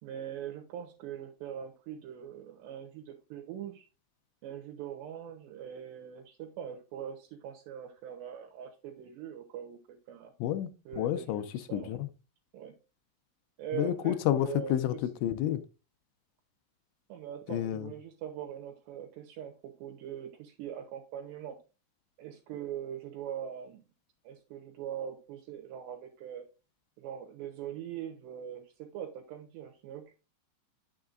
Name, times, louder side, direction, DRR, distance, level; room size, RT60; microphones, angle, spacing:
voice 1, 0.0-3.9 4.4-10.3 10.9-12.0 12.5-12.7 13.6-14.8 15.3-15.4 17.1-21.6 22.2-23.8 24.2-26.4 27.0-30.1, right 9 dB, 75° right, 3.1 m, -42 dB
voice 2, 10.4-12.1 13.7-15.6 17.5-17.9, left 12 dB, 90° left, 3.0 m, -30 dB
9.5 x 7.1 x 2.5 m
omnidirectional pair, 5.2 m